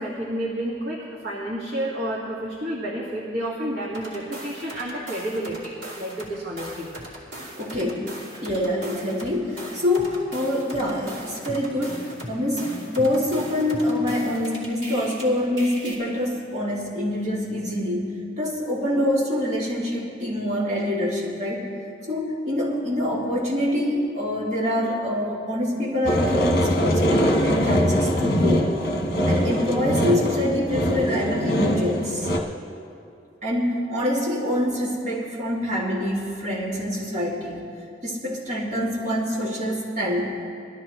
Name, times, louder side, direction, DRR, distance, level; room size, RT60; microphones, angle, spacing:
voice 1, 0.0-7.0, right 1 dB, 60° right, -6 dB, 1.9 m, -30 dB
sound 1, 3.9-6.3 6.6-15.2 15.6-15.9, right 1 dB, 80° right, 3.1 m, -38 dB
voice 2, 7.5-21.7 22.1-28.7 29.3-32.3 33.4-37.6 38.0-40.4, left 1 dB, 40° right, -5 dB, 2.4 m, -25 dB
sound 2, 26.0-32.4, equal, 55° left, 1.3 m, -22 dB
20.0 x 13.0 x 3.1 m, 2.5 s
head